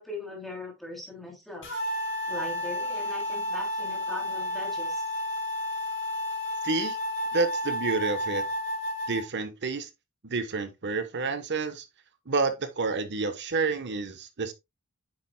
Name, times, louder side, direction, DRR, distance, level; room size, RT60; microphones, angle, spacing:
voice 1, 0.0-1.8 2.3-5.0, left 2 dB, ahead, 2.9 m, -39 dB
sound 1, 1.6-9.2, left 1 dB, 55° left, 3.6 m, -31 dB
voice 2, 6.6-7.0 7.3-8.4 9.1-9.9 10.2-11.8 12.3-14.5, right 4 dB, 50° right, 1.0 m, -29 dB
9.1 x 7.5 x 2.2 m
head